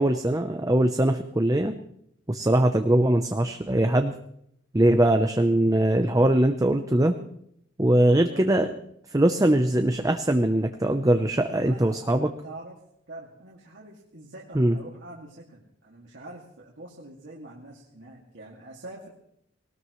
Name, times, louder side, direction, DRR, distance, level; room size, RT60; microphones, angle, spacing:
voice 1, 0.0-1.7 2.3-4.1 4.7-7.1 7.8-8.7 9.1-12.3 14.5-14.8, right 1 dB, 20° right, 6 dB, 0.7 m, -21 dB
voice 2, 11.5-12.8 13.1-19.1, right 2 dB, 70° right, -4 dB, 2.3 m, -45 dB
19.5 x 19.0 x 3.2 m, 0.72 s
head